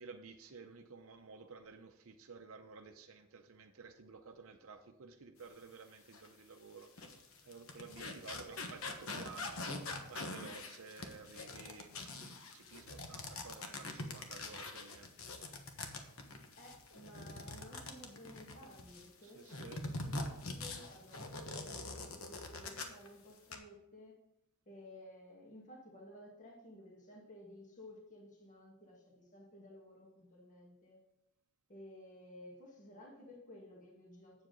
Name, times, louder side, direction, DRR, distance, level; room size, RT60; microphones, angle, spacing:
voice 1, 0.0-9.7 10.0-15.3 19.2-19.8, right 4 dB, 65° right, 0.6 m, -53 dB
sound 1, 6.1-6.3 6.8-19.1 19.5-23.1 23.3-23.6, left 2 dB, 65° left, 1.2 m, -44 dB
voice 2, 16.6-24.1 24.7-31.0 31.7-34.5, left 1 dB, 35° left, 1.8 m, -55 dB
8.5 x 7.5 x 3.9 m
head